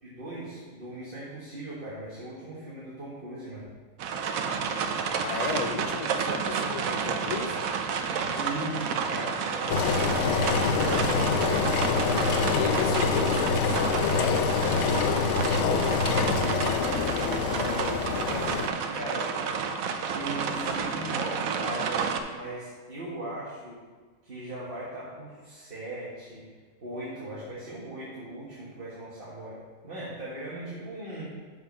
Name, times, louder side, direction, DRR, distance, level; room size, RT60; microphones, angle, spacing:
voice 1, 0.0-3.7 8.3-11.7 16.7-19.5 20.1-23.8 24.2-26.5 26.8-31.2, right 1 dB, 40° right, -8 dB, 1.8 m, -39 dB
sound 1, 4.0-22.2, right 6 dB, 90° right, 1.1 m, -31 dB
voice 2, 5.2-7.6 12.5-15.9, left 7 dB, 50° left, 6 dB, 0.5 m, -35 dB
Engine, 9.7-18.7, left 5 dB, 70° left, 0.9 m, -26 dB
6.4 x 5.8 x 5.5 m, 1.4 s
omnidirectional pair, 1.4 m